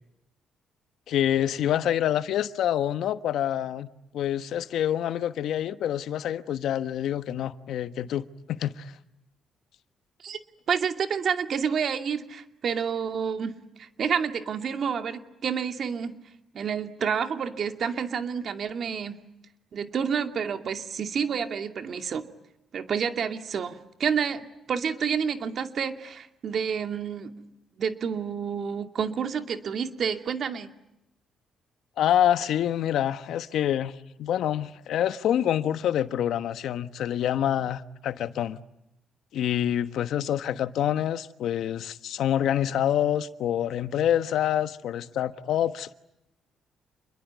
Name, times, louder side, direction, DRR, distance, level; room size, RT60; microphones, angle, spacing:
voice 1, 1.1-3.9 4.1-8.9 32.0-38.6 39.3-45.9, left 10 dB, 75° left, 1.2 m, -26 dB
voice 2, 10.7-16.2 16.5-19.2 19.7-22.3 22.7-27.3 27.8-30.7, right 7 dB, 55° right, 2.4 m, -29 dB
28.5 x 22.0 x 9.4 m
cardioid pair, 90°, 0 cm